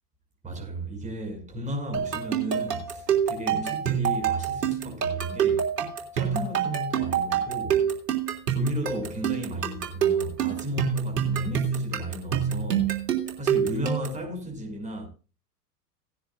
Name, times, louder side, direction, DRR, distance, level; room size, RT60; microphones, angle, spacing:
voice 1, 0.4-5.7 6.1-7.9 8.5-13.0 13.4-15.1, equal, 15° right, 5.9 m, -34 dB
sound 1, 1.9-14.2, right 8 dB, 80° right, 3.3 m, -26 dB
19.0 x 10.5 x 2.4 m
hypercardioid pair, 100°, 48 cm